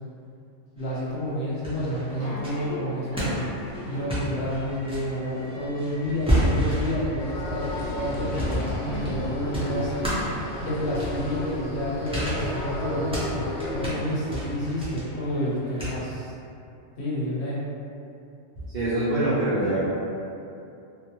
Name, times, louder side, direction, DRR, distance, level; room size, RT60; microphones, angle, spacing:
voice 1, 0.7-3.5 3.8-16.3 16.9-17.6, equal, 55° left, -7 dB, 0.8 m, -30 dB
sound 1, 0.8-1.4 1.6-16.0, right 1 dB, 10° right, 0.4 m, -32 dB
Subway metro underground, 2.1-9.7, left 1 dB, 80° right, 1.1 m, -37 dB
sound 2, 7.2-13.9, left 2 dB, 85° left, 0.9 m, -34 dB
voice 2, 18.7-19.9, right 1 dB, 50° right, -13 dB, 0.7 m, -24 dB
2.5 x 2.1 x 2.9 m, 2.6 s
omnidirectional pair, 1.2 m